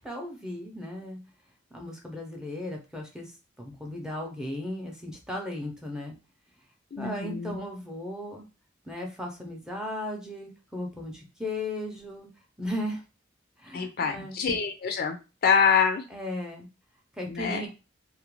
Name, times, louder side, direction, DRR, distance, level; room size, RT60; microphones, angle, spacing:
voice 1, 0.0-1.2 1.7-3.3 3.6-6.1 7.0-8.5 8.8-12.3 12.6-13.0 13.6-14.4 16.1-16.7 17.2-17.7, left 1 dB, 5° right, 0 dB, 0.6 m, -36 dB
voice 2, 6.9-7.6 13.7-15.2 15.4-16.0 17.3-17.7, left 6 dB, 50° left, 6 dB, 0.4 m, -25 dB
2.4 x 2.1 x 3.0 m, 0.30 s
head